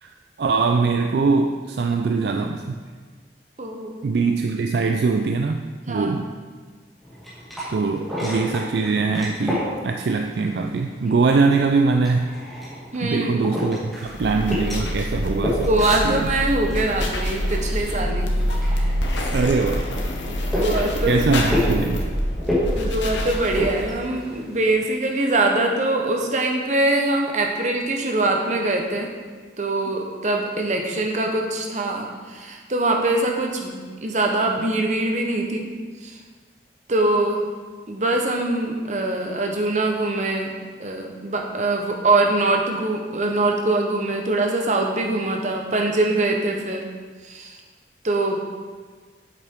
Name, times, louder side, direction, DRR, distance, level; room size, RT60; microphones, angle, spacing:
voice 1, 0.0-2.8 4.0-5.6 5.9-6.3 7.7-12.3 13.0-15.7 16.0-16.3 19.3-19.9 21.1-22.0, right 4 dB, 65° right, 4 dB, 0.4 m, -22 dB
voice 2, 3.6-4.0 5.9-6.4 12.9-13.5 15.6-18.3 18.7-18.9 20.3-21.2 22.7-29.1 29.6-35.7 36.0-36.2 36.9-37.4 37.9-40.5 40.8-46.8 47.2-47.6 48.0-48.4, right 2 dB, 40° right, 2 dB, 0.9 m, -23 dB
sound 1, 7.0-24.8, left 1 dB, ahead, 2.1 m, -31 dB
sound 2, 14.1-24.0, equal, 85° left, 1.1 m, -26 dB
8.2 x 7.1 x 3.6 m, 1.5 s
head